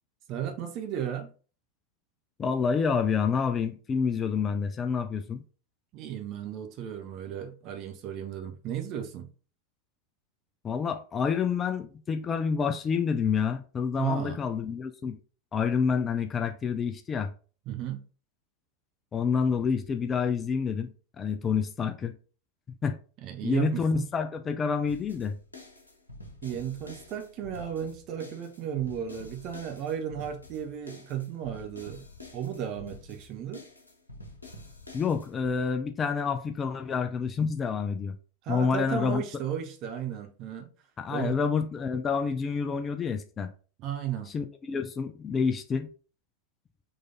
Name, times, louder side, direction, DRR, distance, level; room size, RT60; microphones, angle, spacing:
voice 1, 0.3-1.3 5.9-9.3 14.0-14.4 17.7-18.0 23.2-24.1 26.4-32.1 32.3-33.6 38.4-40.7 41.1-41.4 43.8-44.3, right 9 dB, 40° right, 0.8 m, -34 dB
voice 2, 2.4-5.4 10.6-15.2 15.5-17.3 19.1-20.9 21.2-22.1 22.7-23.0 23.4-25.4 34.9-38.2 38.5-39.2 41.0-43.5 44.3-45.9, left 6 dB, 20° left, 0.5 m, -28 dB
sound 1, 24.9-35.6, left 1 dB, 80° left, 1.1 m, -48 dB
4.0 x 3.2 x 3.9 m
figure-of-eight pair, 90°, 0 cm